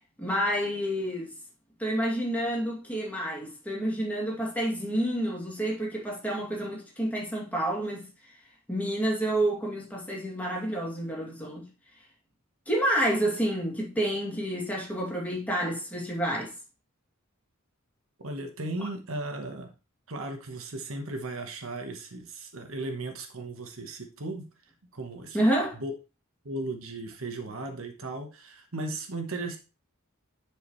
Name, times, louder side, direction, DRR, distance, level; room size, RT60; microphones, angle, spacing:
voice 1, 0.2-1.3 1.8-8.1 8.7-11.7 12.7-16.5 25.3-25.8, right 1 dB, 10° left, 2.5 m, -29 dB
voice 2, 18.2-19.7 20.1-24.5 24.9-25.5 25.7-25.9 26.4-29.6, right 2 dB, 70° right, 1.3 m, -36 dB
10.5 x 4.8 x 3.2 m
head